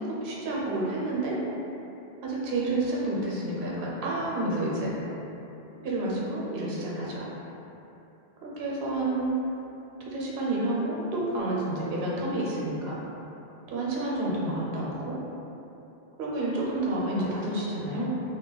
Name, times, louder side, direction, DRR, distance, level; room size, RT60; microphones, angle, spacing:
voice 1, 0.2-1.4 2.2-4.9 5.8-7.3 8.4-9.3 10.1-13.0 13.7-15.2 16.2-18.1, right 2 dB, 65° right, -5 dB, 0.8 m, -29 dB
2.3 x 2.2 x 3.8 m, 3.0 s
omnidirectional pair, 1.1 m